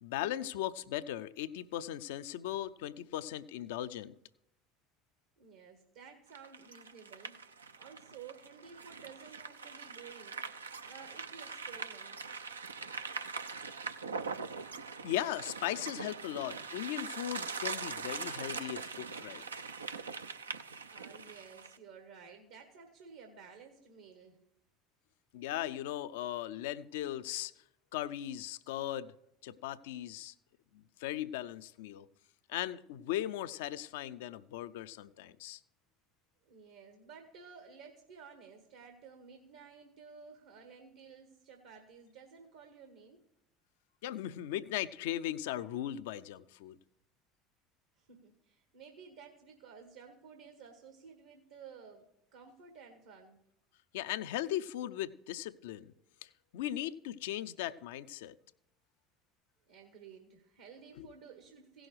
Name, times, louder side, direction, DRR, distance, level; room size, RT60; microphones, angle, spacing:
voice 1, 0.0-4.1 15.0-19.4 25.3-27.5 27.9-29.1 29.4-30.3 30.7-32.1 32.5-35.6 44.0-46.8 53.9-55.9 56.2-58.3 61.0-61.1, left 13 dB, 70° left, 14 dB, 0.5 m, -38 dB
voice 2, 5.4-7.5 7.8-12.2 20.8-24.4 36.4-43.2 48.0-53.4 59.7-61.9, right 6 dB, 75° right, 5 dB, 1.3 m, -54 dB
sound 1, 6.3-21.8, right 5 dB, 90° right, 0.5 m, -42 dB
16.0 x 6.3 x 4.8 m, 0.82 s
hypercardioid pair, 70°, 0 cm